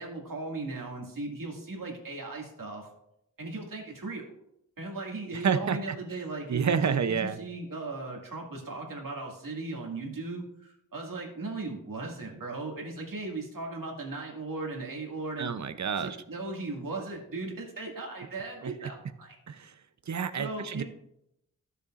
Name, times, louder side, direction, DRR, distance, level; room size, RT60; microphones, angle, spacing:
voice 1, 0.0-2.9 3.4-4.3 4.8-15.5 16.0-19.4 20.4-20.8, right 3 dB, 70° right, 0 dB, 2.2 m, -37 dB
voice 2, 5.3-5.8 6.5-7.4 15.4-16.2 19.5-19.7 20.1-20.8, right 6 dB, 55° right, 11 dB, 0.7 m, -28 dB
15.0 x 6.8 x 2.5 m, 0.81 s
wide cardioid pair, 115°, 34 cm